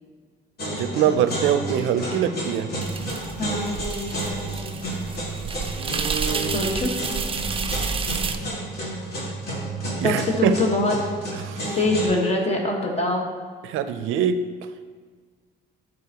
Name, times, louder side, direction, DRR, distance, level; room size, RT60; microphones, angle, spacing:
sound 1, 0.6-12.1, right 1 dB, 50° left, 2.1 m, -31 dB
voice 1, 0.8-2.7 5.8-6.5 10.0-10.6 11.4-11.8 13.6-14.4, right 8 dB, 85° right, 10 dB, 0.4 m, -24 dB
sound 2, 2.8-8.4, right 5 dB, 30° right, 0.4 m, -30 dB
voice 2, 3.4-3.7 6.5-6.9 10.0-11.0 11.8-13.3, left 2 dB, 30° left, 0 dB, 1.3 m, -23 dB
11.0 x 4.0 x 2.9 m, 1.5 s
cardioid pair, 90°, 20 cm